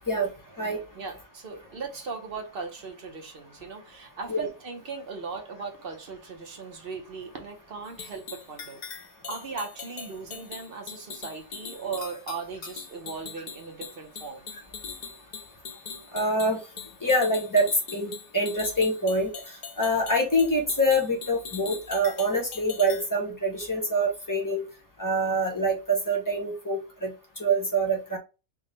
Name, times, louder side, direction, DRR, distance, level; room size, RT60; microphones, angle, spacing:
voice 1, 0.9-8.8 9.3-14.5, right 4 dB, 50° right, 0.8 m, -38 dB
sound 1, 7.8-23.1, left 6 dB, 70° left, 0.4 m, -41 dB
voice 2, 16.1-16.6 17.0-24.7 25.0-28.2, right 1 dB, 20° left, 0.5 m, -25 dB
3.6 x 2.1 x 3.8 m
omnidirectional pair, 1.4 m